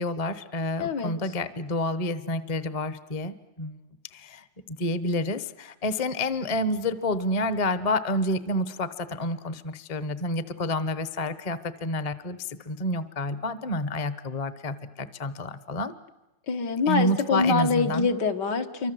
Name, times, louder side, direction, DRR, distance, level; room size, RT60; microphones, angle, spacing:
voice 1, 0.0-3.8 4.1-15.9 16.9-18.1, left 1 dB, 25° left, 14 dB, 0.9 m, -29 dB
voice 2, 0.8-1.1 16.5-18.9, left 4 dB, 70° left, 5 dB, 2.2 m, -25 dB
28.0 x 24.5 x 7.8 m, 1.0 s
omnidirectional pair, 1.9 m